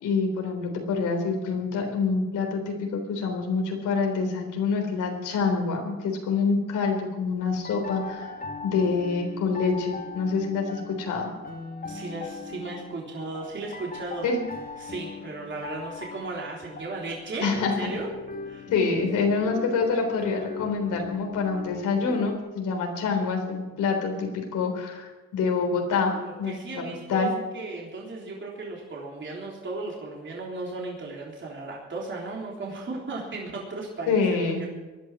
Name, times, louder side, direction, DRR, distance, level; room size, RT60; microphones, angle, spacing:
voice 1, 0.0-8.3 8.6-11.3 14.2-14.4 17.4-17.9 18.7-26.1 26.4-26.5 27.1-27.3 34.1-34.6, left 4 dB, 85° left, 3 dB, 3.8 m, -26 dB
sound 1, 7.4-22.4, left 4 dB, 30° left, 2.0 m, -39 dB
voice 2, 11.9-14.3 14.8-18.1 18.4-18.7 26.1-27.3 27.5-34.7, right 2 dB, 40° right, -2 dB, 3.6 m, -36 dB
19.0 x 11.5 x 6.2 m, 1.2 s
cardioid pair, 90°, 30 cm